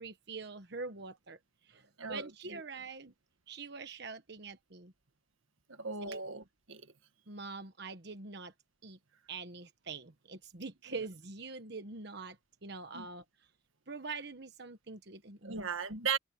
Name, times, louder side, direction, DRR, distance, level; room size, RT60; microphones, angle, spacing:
voice 1, 0.0-1.4 1.7-3.1 3.5-4.9 6.0-6.2 7.3-8.5 8.8-9.0 9.3-12.4 12.6-13.2 13.9-15.7, right 4 dB, 55° right, 1.3 m, -44 dB
voice 2, 2.0-2.6 5.7-6.8 12.9-13.1 15.4-16.2, right 5 dB, 80° right, 1.6 m, -37 dB
head